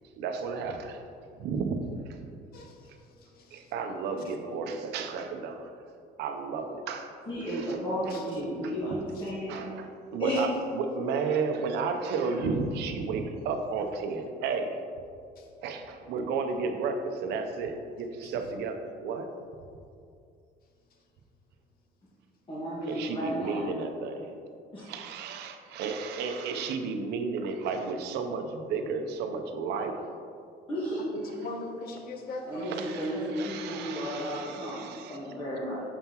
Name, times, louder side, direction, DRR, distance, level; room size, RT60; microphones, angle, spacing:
voice 1, 0.1-1.0 1.4-2.1 3.5-5.7 6.2-7.1 7.5-7.8 9.5-14.8 15.6-19.3 22.9-24.3 24.8-30.0 32.6-35.3, right 4 dB, 85° right, 5 dB, 0.6 m, -33 dB
voice 2, 2.5-3.7 8.1-8.2 15.4-15.5 18.2-18.3 31.1-32.7, left 2 dB, 60° left, 3 dB, 0.9 m, -41 dB
voice 3, 7.3-9.6 10.2-10.4 22.5-23.7 24.7-24.8 30.7-31.0 32.5-35.8, equal, 30° left, -9 dB, 1.4 m, -33 dB
6.9 x 5.5 x 2.9 m, 2.4 s
cardioid pair, 110°, 17 cm